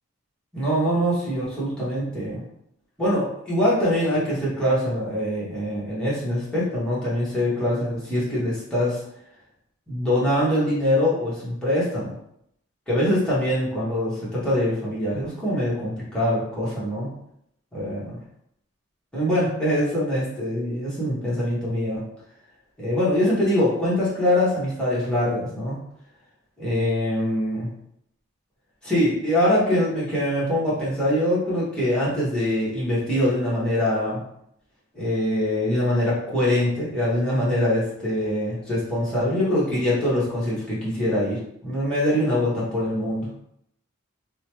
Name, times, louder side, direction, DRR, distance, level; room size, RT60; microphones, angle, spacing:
voice 1, 0.5-2.4 3.0-9.0 9.9-12.1 12.9-17.1 17.7-18.2 19.1-22.0 22.8-25.8 26.6-27.7 28.8-34.2 34.9-43.3, left 1 dB, 5° left, -9 dB, 1.1 m, -23 dB
2.8 x 2.2 x 3.0 m, 0.74 s
head